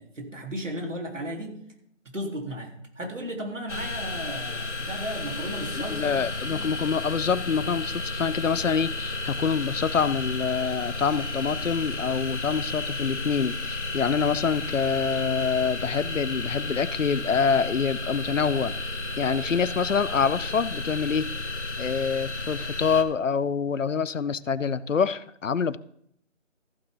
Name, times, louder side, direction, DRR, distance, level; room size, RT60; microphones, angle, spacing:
voice 1, 0.0-1.6 2.1-6.2 6.5-6.7, equal, 75° right, 3.5 m, -35 dB
sound 1, 3.7-23.0, left 2 dB, 65° left, 1.7 m, -32 dB
voice 2, 5.7-18.8 19.2-21.5 21.8-25.8, left 6 dB, 80° left, 0.7 m, -26 dB
14.5 x 9.0 x 3.8 m
figure-of-eight pair, 175°, 37 cm